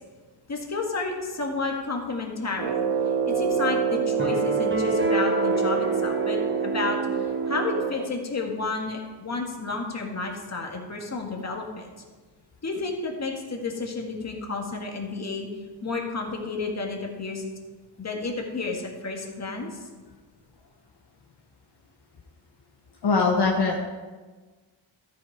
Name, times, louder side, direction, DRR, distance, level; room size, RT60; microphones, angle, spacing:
voice 1, 0.5-2.8 3.3-7.0 7.5-11.9 12.6-15.5 15.8-17.4 18.0-19.8, left 3 dB, 35° left, 1 dB, 1.8 m, -31 dB
Brass instrument, 2.5-8.2, right 6 dB, 70° right, 0.8 m, -26 dB
sound 1, 4.2-7.4, right 2 dB, 25° right, 1.3 m, -29 dB
voice 2, 23.0-23.8, left 4 dB, 60° left, 0 dB, 1.2 m, -21 dB
13.5 x 6.6 x 4.7 m, 1.3 s
wide cardioid pair, 110°, 44 cm